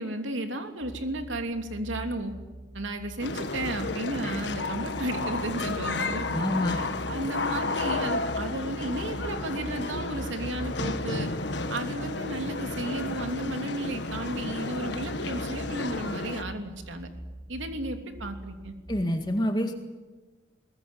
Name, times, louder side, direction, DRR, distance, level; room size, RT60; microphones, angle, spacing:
voice 1, 0.0-2.3 2.7-6.4 6.7-11.3 11.7-17.1 17.5-18.7, right 1 dB, 80° right, 5 dB, 3.1 m, -33 dB
sound 1, 0.8-19.1, right 1 dB, 45° right, 2.8 m, -43 dB
sound 2, 3.2-16.4, left 3 dB, 65° left, 1.6 m, -32 dB
voice 2, 6.3-6.8 18.9-19.7, left 1 dB, 20° left, 5 dB, 1.9 m, -27 dB
22.5 x 20.0 x 9.4 m, 1.2 s
head